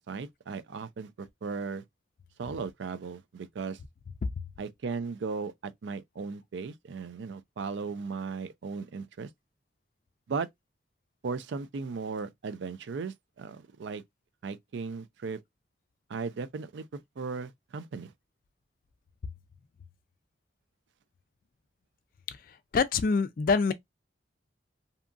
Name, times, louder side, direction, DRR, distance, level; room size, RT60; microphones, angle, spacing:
voice 1, 0.0-1.8 2.4-3.8 4.6-9.3 10.3-10.5 11.2-14.0 14.4-15.4 16.1-18.1, right 4 dB, 80° right, 0.4 m, -37 dB
voice 2, 22.7-23.7, left 4 dB, 50° left, 0.3 m, -25 dB
2.7 x 2.3 x 2.5 m
head